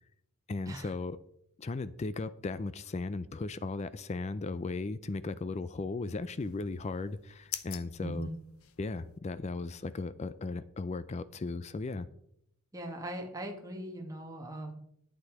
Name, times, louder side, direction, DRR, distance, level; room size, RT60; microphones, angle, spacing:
voice 1, 0.5-1.2 1.6-8.3 8.8-12.1, left 3 dB, 30° left, 15 dB, 0.4 m, -36 dB
sound 1, 6.4-9.2, left 12 dB, 75° left, 0.8 m, -46 dB
voice 2, 8.0-8.4 12.7-14.7, right 1 dB, 15° right, 1 dB, 1.3 m, -40 dB
11.5 x 8.2 x 4.8 m, 0.74 s
head